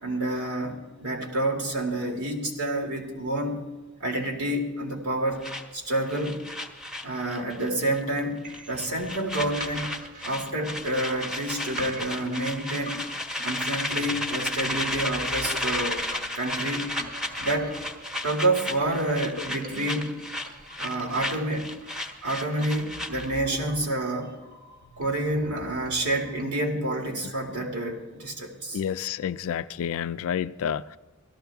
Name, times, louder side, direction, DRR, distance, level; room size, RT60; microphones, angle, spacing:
voice 1, 0.0-3.6 4.0-5.5 5.7-6.4 7.0-9.9 10.2-13.1 13.4-16.0 16.3-17.0 17.4-17.8 18.2-20.1 20.8-21.7 22.2-24.4 25.0-28.8, right 1 dB, 75° right, 2.4 m, -28 dB
sound 1, 5.4-7.7 7.9-8.2 8.5-23.4, left 1 dB, ahead, 1.2 m, -33 dB
sound 2, 8.4-26.4, right 1 dB, 40° right, 1.2 m, -45 dB
voice 2, 28.7-31.0, left 8 dB, 65° left, 0.3 m, -29 dB
17.0 x 13.5 x 3.5 m
head